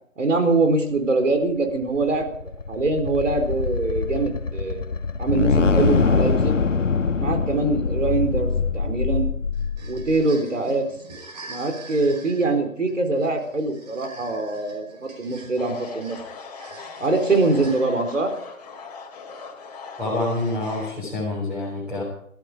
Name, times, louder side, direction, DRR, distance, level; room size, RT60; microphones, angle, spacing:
voice 1, 0.2-4.9 5.2-6.6 7.2-9.3 9.9-10.8 11.5-16.2 17.0-18.3, right 3 dB, 65° right, 6 dB, 4.1 m, -23 dB
sound 1, 1.8-10.2, left 5 dB, 65° left, 1.7 m, -23 dB
sound 2, 9.5-18.2, right 3 dB, 30° right, 5.0 m, -44 dB
sound 3, 15.6-20.9, left 5 dB, 30° left, 2.8 m, -40 dB
voice 2, 20.0-22.0, left 2 dB, 5° right, -7 dB, 3.6 m, -27 dB
18.0 x 14.5 x 4.9 m, 0.67 s
figure-of-eight pair, 165°, 40 cm